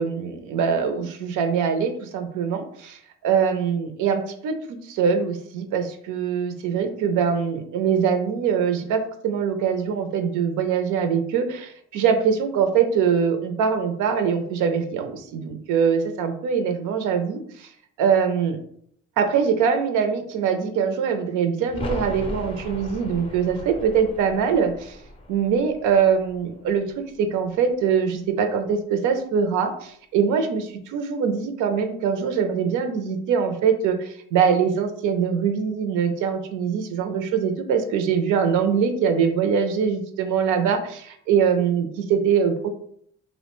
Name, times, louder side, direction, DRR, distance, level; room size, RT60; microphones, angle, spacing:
voice 1, 0.0-3.0 3.2-17.7 18.0-18.6 19.2-25.0 25.3-26.8 27.2-42.7, right 7 dB, 90° right, 7 dB, 0.5 m, -23 dB
sound 1, 21.7-27.3 27.5-27.6, left 1 dB, 20° left, 0.4 m, -37 dB
2.5 x 2.1 x 3.0 m, 0.65 s
cardioid pair, 90°, 30 cm